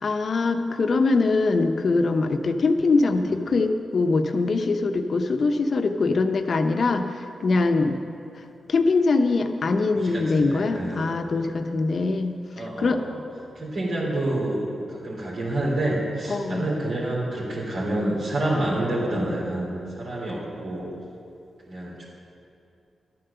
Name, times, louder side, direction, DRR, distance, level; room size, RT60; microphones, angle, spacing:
voice 1, 0.0-8.0 8.7-12.4 12.8-13.0 16.3-16.7, left 3 dB, 60° left, 7 dB, 0.8 m, -23 dB
voice 2, 9.9-11.2 12.5-13.2 13.5-14.6 14.9-19.7 19.9-20.9 21.7-22.0, right 1 dB, 70° right, -7 dB, 3.0 m, -28 dB
12.0 x 7.7 x 6.9 m, 2.6 s
cardioid pair, 55°, 0 cm